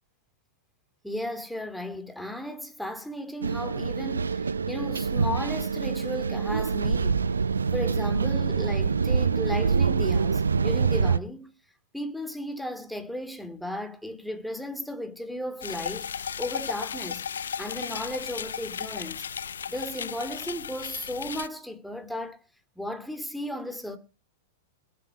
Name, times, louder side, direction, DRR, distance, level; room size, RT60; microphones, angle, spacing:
voice 1, 1.0-7.3 7.7-11.5 11.9-17.2 17.6-19.2 19.7-22.4 22.8-24.0, left 1 dB, ahead, 2.6 m, -35 dB
sound 1, 3.4-11.2, right 5 dB, 85° right, 0.7 m, -25 dB
sound 2, 15.6-21.5, left 7 dB, 75° left, 0.7 m, -35 dB
21.5 x 7.6 x 4.9 m
figure-of-eight pair, 100°, 0 cm